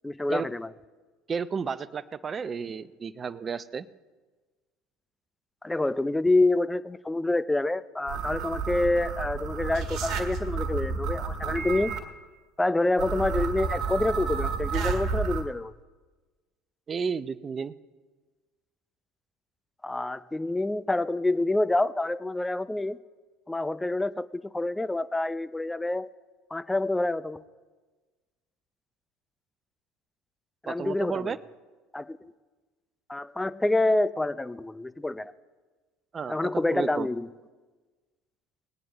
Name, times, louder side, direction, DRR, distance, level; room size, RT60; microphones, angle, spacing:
voice 1, 0.0-0.7 5.6-12.0 12.6-15.7 19.8-23.0 23.5-26.1 26.5-27.4 30.6-31.3 31.9-32.3 33.1-35.3 36.3-37.3, left 2 dB, 10° left, 15 dB, 0.5 m, -27 dB
voice 2, 1.3-3.9 16.9-17.7 30.7-31.4 36.1-37.1, right 6 dB, 35° right, 16 dB, 0.6 m, -32 dB
sound 1, 8.1-12.0 13.0-15.4, right 5 dB, 55° right, 1.6 m, -31 dB
20.0 x 9.3 x 4.0 m, 1.3 s
hypercardioid pair, 65°, 0 cm